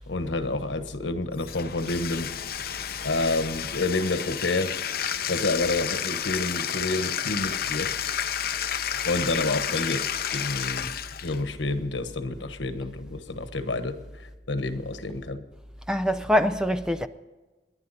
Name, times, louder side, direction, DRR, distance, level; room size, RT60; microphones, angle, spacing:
voice 1, 0.0-2.3 3.0-4.7 5.3-8.0 9.0-10.9 11.2-14.0 14.5-15.4, left 2 dB, 90° left, 1.3 m, -29 dB
Bathtub (filling or washing), 1.4-11.4, left 9 dB, 55° left, 0.7 m, -31 dB
sound 1, 1.6-7.5, equal, 25° left, 6.2 m, -50 dB
voice 2, 15.9-17.1, equal, 5° right, 0.5 m, -24 dB
30.0 x 11.0 x 4.2 m
head